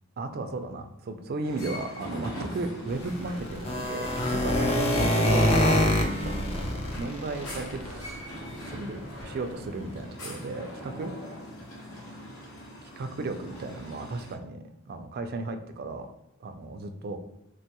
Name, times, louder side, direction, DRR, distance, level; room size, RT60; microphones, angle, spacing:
voice 1, 0.2-5.5 6.2-8.2 8.7-11.1 13.0-16.1 16.4-17.2, right 3 dB, 50° right, 7 dB, 0.3 m, -35 dB
sound 1, 1.4-14.4, left 1 dB, 75° left, 0.9 m, -42 dB
sound 2, 2.9-8.1 8.5-8.6 9.0-9.2 9.5-9.6 10.0-10.1, left 1 dB, 30° left, 0.4 m, -25 dB
3.2 x 2.2 x 2.8 m, 0.85 s
head